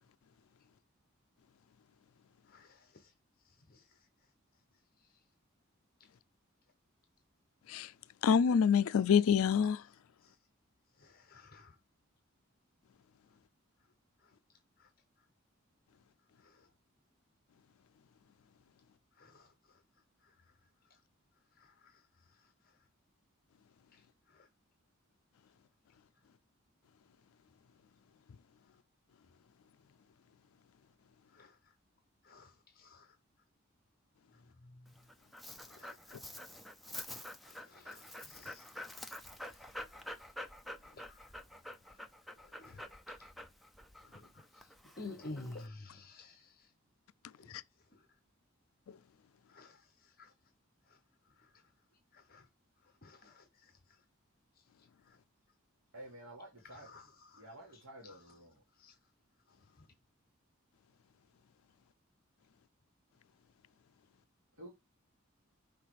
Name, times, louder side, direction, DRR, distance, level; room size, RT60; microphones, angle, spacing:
voice 1, 2.4-4.1 5.0-5.2 6.0-6.1 10.2-10.4 10.9-11.8 13.3-13.4 14.2-14.4 14.8-14.9 15.2-15.3 16.4-16.7 19.1-21.0 21.5-22.9 23.9-24.5 31.3-31.8 32.2-33.2 34.3-35.1 35.6-36.2 37.1-38.8 39.1-40.1 40.8-41.3 41.6-42.0 42.4-43.3 44.0-46.7 47.3-48.1 49.5-50.3 50.8-51.0 51.3-51.7 52.1-52.5 52.8-54.0 54.5-55.2 56.6-58.4 58.7-59.0 59.5-59.9, left 2 dB, 45° left, 1.0 m, -55 dB
voice 2, 8.2-9.8 47.5-47.6 48.9-49.0, left 7 dB, 85° left, 0.4 m, -27 dB
Dog, 34.9-45.7, left 1 dB, ahead, 0.6 m, -48 dB
voice 3, 55.9-56.9 57.4-58.5 64.6-64.7, right 1 dB, 75° right, 1.9 m, -51 dB
6.0 x 3.7 x 4.7 m
head